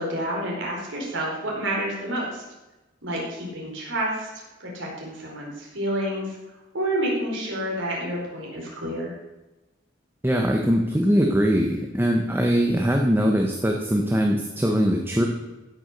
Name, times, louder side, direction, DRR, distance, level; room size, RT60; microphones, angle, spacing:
voice 1, 0.0-2.4 3.0-6.4 6.7-9.1, right 1 dB, 85° right, -3 dB, 4.5 m, -29 dB
voice 2, 10.2-15.3, equal, 10° right, 1 dB, 1.1 m, -21 dB
15.5 x 7.2 x 6.6 m, 1.1 s
head